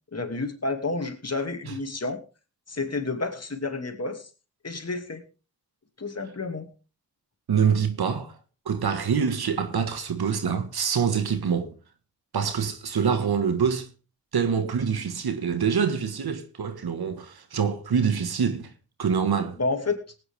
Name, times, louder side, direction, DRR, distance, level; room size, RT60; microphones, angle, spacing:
voice 1, 0.1-2.2 2.7-4.3 4.6-5.2 6.0-6.7 19.6-20.0, left 3 dB, 40° left, 2.6 m, -30 dB
voice 2, 7.5-8.3 8.6-11.7 12.3-13.9 14.3-18.7 19.0-19.6, right 6 dB, 85° right, 1.7 m, -25 dB
18.5 x 9.4 x 3.6 m
cardioid pair, 50°, 37 cm